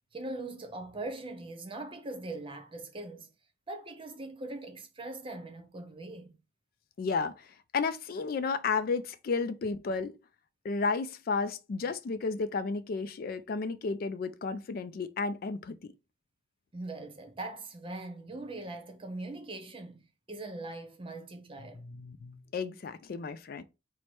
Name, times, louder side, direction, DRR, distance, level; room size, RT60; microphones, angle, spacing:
voice 1, 0.1-3.3 3.7-6.4 16.7-20.0 20.3-21.9, right 2 dB, 30° right, 0.8 m, -41 dB
voice 2, 7.0-10.2 10.6-15.8 21.8-23.6, left 4 dB, 50° left, 0.4 m, -33 dB
4.6 x 2.1 x 4.2 m
head